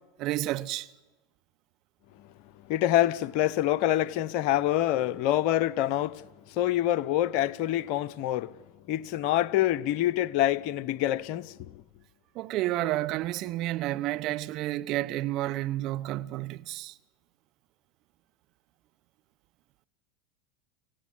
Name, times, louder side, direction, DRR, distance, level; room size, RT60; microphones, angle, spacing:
voice 1, 0.2-0.9 12.3-16.9, right 15 dB, 55° right, 1.0 m, -30 dB
voice 2, 2.7-8.6 8.9-11.8, left 13 dB, 60° left, 0.8 m, -26 dB
25.0 x 17.0 x 9.8 m
hypercardioid pair, 90°, 0 cm